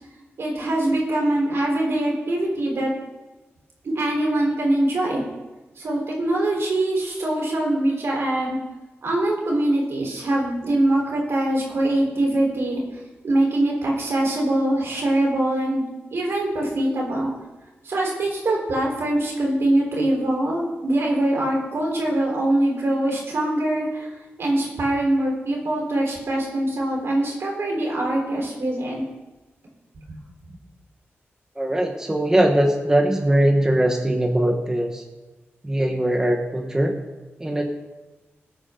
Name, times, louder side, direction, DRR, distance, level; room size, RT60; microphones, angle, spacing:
voice 1, 0.4-2.9 3.9-5.2 5.8-8.6 9.0-17.3 17.8-24.1 24.4-29.0, right 1 dB, 70° right, -2 dB, 4.3 m, -23 dB
voice 2, 31.6-35.0 35.6-36.9 37.4-37.7, right 1 dB, 15° right, 2 dB, 1.3 m, -21 dB
20.5 x 8.6 x 3.9 m, 1.1 s
wide cardioid pair, 110°, 4 cm